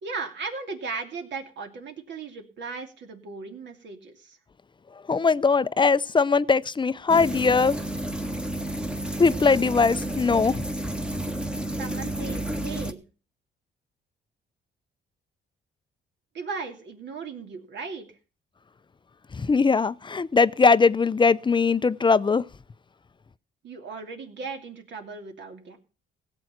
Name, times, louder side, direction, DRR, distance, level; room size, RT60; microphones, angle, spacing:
voice 1, 0.0-4.4 11.8-13.0 16.3-18.1 23.6-25.8, right 4 dB, 65° right, 2.7 m, -37 dB
voice 2, 5.1-7.8 9.2-10.6 19.3-22.4, left 4 dB, 25° left, 0.6 m, -20 dB
sound 1, 7.1-12.9, right 1 dB, 5° right, 1.2 m, -31 dB
16.5 x 7.7 x 5.9 m
cardioid pair, 90°, 20 cm